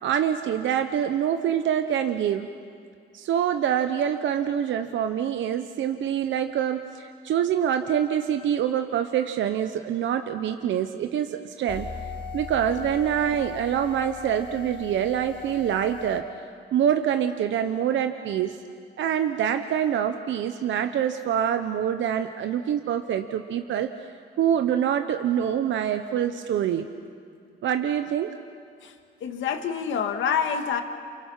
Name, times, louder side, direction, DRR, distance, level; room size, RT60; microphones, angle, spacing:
voice 1, 0.0-2.5 3.1-11.9 12.3-16.3 16.7-18.6 19.0-23.9 24.4-26.9 27.6-28.3, right 9 dB, 75° right, 7 dB, 1.1 m, -25 dB
sound 1, 11.7-16.2, left 6 dB, ahead, 5.0 m, -38 dB
voice 2, 29.2-30.8, left 7 dB, 75° left, 6 dB, 2.0 m, -27 dB
29.0 x 28.0 x 5.8 m, 2.3 s
cardioid pair, 90°, 20 cm